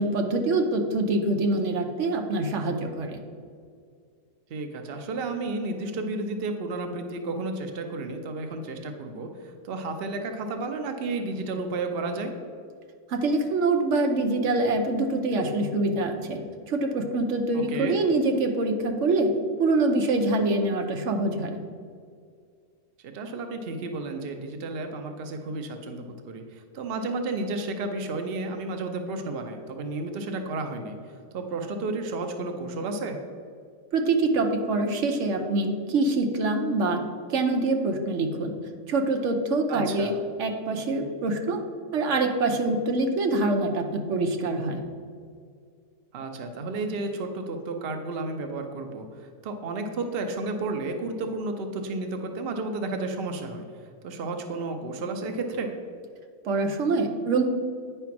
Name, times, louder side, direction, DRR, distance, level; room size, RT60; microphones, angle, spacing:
voice 1, 0.0-3.2 13.1-16.4 16.7-19.3 19.6-21.6 33.9-37.0 37.3-38.5 38.9-40.1 40.4-41.6 41.9-44.8 56.4-57.4, right 2 dB, 55° right, 3 dB, 0.8 m, -25 dB
voice 2, 4.5-12.3 17.5-18.0 23.0-31.0 31.3-33.2 39.7-40.1 46.1-53.7 54.0-55.7, right 3 dB, 85° right, 5 dB, 0.5 m, -32 dB
9.3 x 3.4 x 5.8 m, 2.1 s
omnidirectional pair, 1.9 m